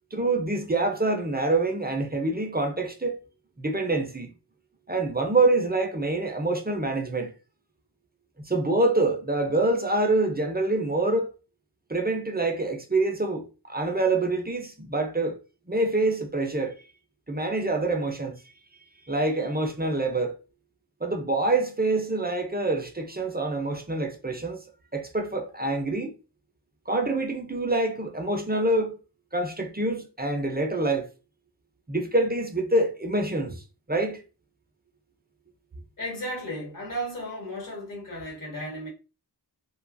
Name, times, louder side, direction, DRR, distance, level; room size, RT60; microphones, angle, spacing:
voice 1, 0.1-3.2 3.6-4.3 4.9-7.3 8.5-11.3 11.9-15.4 15.7-16.7 17.3-18.3 19.1-20.3 21.0-24.6 24.9-26.1 26.9-29.0 29.3-31.1 31.9-33.6 33.9-34.2, right 2 dB, 25° right, 0.5 m, -26 dB
voice 2, 36.0-38.9, equal, 45° left, 1.2 m, -34 dB
2.8 x 2.3 x 2.5 m
wide cardioid pair, 45°, 42 cm